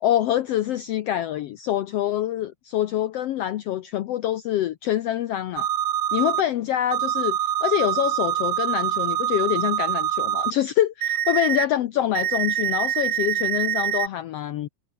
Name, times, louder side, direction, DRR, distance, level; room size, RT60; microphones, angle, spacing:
voice 1, 0.0-5.7 6.1-14.7, left 12 dB, 70° left, 1.6 m, -25 dB
sound 1, 5.6-6.4 6.9-10.5 11.0-11.6 12.1-14.1, right 10 dB, 60° right, 1.2 m, -25 dB
omnidirectional pair, 3.4 m